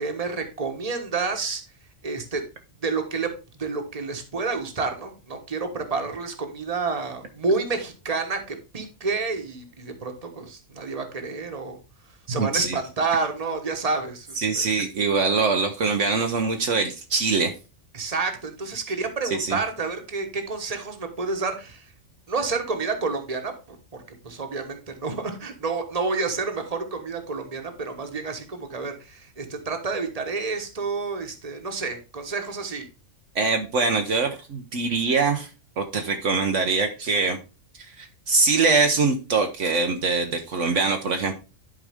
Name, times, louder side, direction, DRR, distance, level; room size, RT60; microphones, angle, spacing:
voice 1, 0.0-1.6 2.0-2.4 2.8-11.8 12.3-14.7 17.9-21.8 22.3-23.8 24.2-32.8, right 4 dB, 30° right, 5 dB, 1.4 m, -29 dB
voice 2, 12.3-12.8 14.4-17.5 19.4-19.6 33.3-35.5 35.8-37.4 37.8-41.3, right 4 dB, 65° right, 5 dB, 1.2 m, -23 dB
11.0 x 4.9 x 3.5 m, 0.31 s
omnidirectional pair, 1.4 m